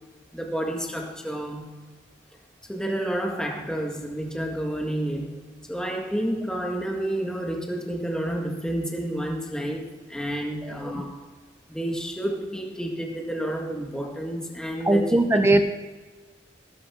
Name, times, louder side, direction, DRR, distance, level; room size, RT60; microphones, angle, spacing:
voice 1, 0.3-1.8 2.7-5.4 5.7-11.2 11.7-15.2, right 1 dB, 5° left, 0 dB, 1.8 m, -30 dB
voice 2, 10.6-11.0 14.8-15.6, right 2 dB, 15° right, 7 dB, 0.7 m, -20 dB
18.5 x 12.0 x 3.7 m, 1.3 s
head